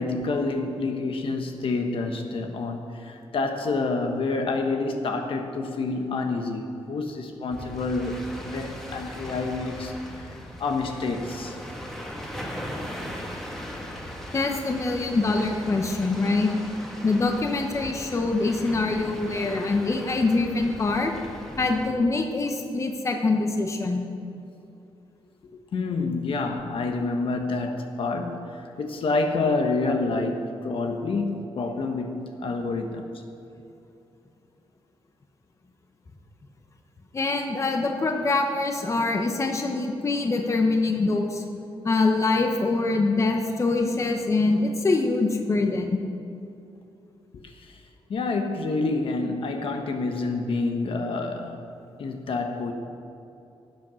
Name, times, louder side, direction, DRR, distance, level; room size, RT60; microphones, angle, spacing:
voice 1, 0.0-8.2 8.4-10.3 10.6-11.6 25.7-33.1 48.1-51.6 52.0-52.7, left 3 dB, 65° left, 4 dB, 1.3 m, -28 dB
sound 1, 7.5-21.9, equal, 5° left, 1.8 m, -38 dB
voice 2, 14.3-16.5 17.0-21.1 21.6-24.1 29.9-30.0 37.1-41.4 41.8-46.0, left 3 dB, 30° left, 3 dB, 1.1 m, -24 dB
17.0 x 7.8 x 6.4 m, 2.7 s
wide cardioid pair, 140°, 10 cm